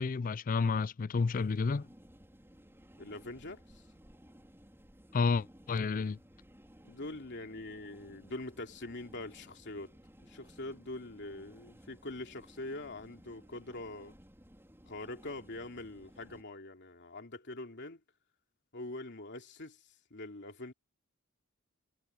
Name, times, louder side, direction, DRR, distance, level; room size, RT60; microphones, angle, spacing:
voice 1, 0.0-1.9 5.1-6.2, left 4 dB, 40° left, 0.4 m, -30 dB
sound 1, 1.2-16.4, equal, 10° right, 5.0 m, -58 dB
voice 2, 3.0-3.8 6.8-10.0 10.2-14.2 14.8-18.0 18.7-20.7, left 2 dB, 55° left, 2.9 m, -44 dB
head